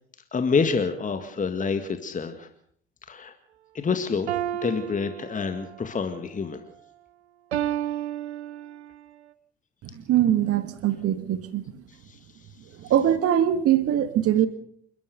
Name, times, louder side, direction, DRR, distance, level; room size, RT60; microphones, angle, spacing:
voice 1, 0.3-2.5 3.1-3.3 3.7-4.3 4.6-6.6 12.1-12.2, left 5 dB, 25° left, 8 dB, 2.0 m, -27 dB
sound 1, 4.3-5.8 7.5-9.0, right 11 dB, 75° right, 0.9 m, -31 dB
voice 2, 9.9-11.7 12.8-14.5, right 11 dB, 45° right, 12 dB, 1.8 m, -22 dB
28.5 x 13.0 x 6.9 m, 0.64 s
figure-of-eight pair, 60°, 33 cm